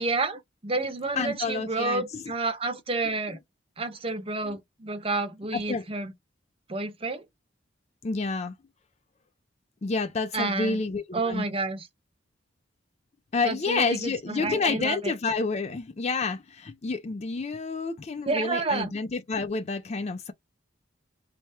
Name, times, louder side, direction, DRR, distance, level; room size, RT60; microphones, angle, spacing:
voice 1, 0.0-3.4 3.8-6.1 6.7-7.2 10.3-10.8 11.1-11.9 13.4-15.1 18.2-18.9, right 3 dB, 30° right, 0.8 m, -30 dB
voice 2, 1.1-2.2 4.4-4.6 5.5-5.8 8.0-8.5 9.8-11.5 13.3-20.3, left 4 dB, 35° left, 0.4 m, -29 dB
3.4 x 2.1 x 4.2 m
head